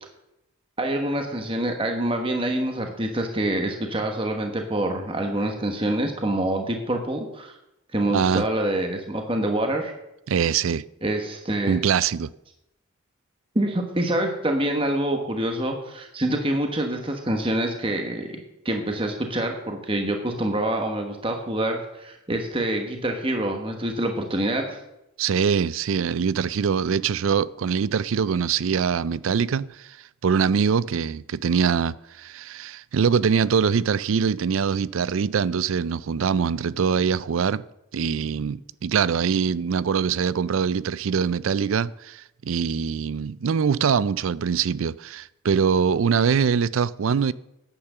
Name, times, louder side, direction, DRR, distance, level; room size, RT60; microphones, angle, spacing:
voice 1, 0.8-7.6 7.9-9.9 11.0-11.8 13.5-24.8, right 1 dB, 25° right, 1.3 m, -26 dB
voice 2, 8.1-8.4 10.3-10.8 11.7-12.3 25.2-30.0 30.2-37.6 37.9-47.3, right 6 dB, 75° right, 0.4 m, -23 dB
10.0 x 8.8 x 6.8 m
head